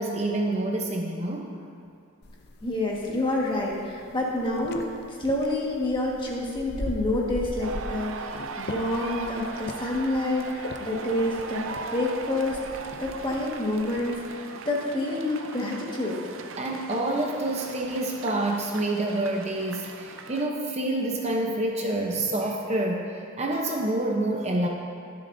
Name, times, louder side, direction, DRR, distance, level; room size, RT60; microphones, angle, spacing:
voice 1, 0.0-1.5 16.6-24.7, right 1 dB, 30° right, 0 dB, 0.8 m, -27 dB
sound 1, 2.2-14.3, left 2 dB, 50° left, 0.6 m, -41 dB
voice 2, 2.6-16.2, left 1 dB, 25° left, -3 dB, 1.6 m, -28 dB
sound 2, 7.6-20.5, right 5 dB, 70° right, 0.6 m, -39 dB
21.5 x 7.7 x 2.7 m, 2.3 s
head